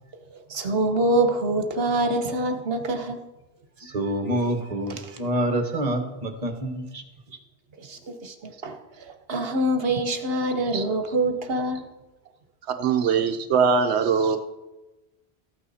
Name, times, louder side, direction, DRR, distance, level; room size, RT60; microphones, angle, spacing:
voice 1, 0.5-3.2 7.8-8.8 9.3-11.8, right 1 dB, 65° right, 6 dB, 1.3 m, -25 dB
voice 2, 3.8-7.0, right 1 dB, 40° right, 5 dB, 1.4 m, -27 dB
voice 3, 12.7-14.4, right 6 dB, 85° right, 6 dB, 0.9 m, -22 dB
14.0 x 9.0 x 4.2 m, 1.1 s
omnidirectional pair, 1.1 m